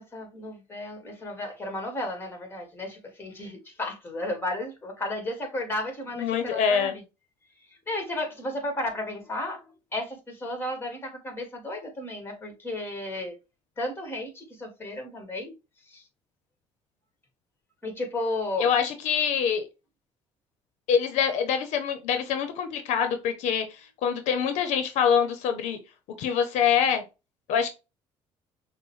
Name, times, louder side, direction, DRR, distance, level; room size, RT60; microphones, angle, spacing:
voice 1, 0.0-7.0 7.9-13.4 13.8-15.5 15.9-16.0 17.8-18.7, left 1 dB, 20° left, 1.7 m, -33 dB
voice 2, 6.2-7.0 18.6-19.7 20.9-25.8 26.2-27.0 27.5-27.7, left 7 dB, 80° left, 0.7 m, -25 dB
6.1 x 2.2 x 3.1 m
cardioid pair, 105°, 12 cm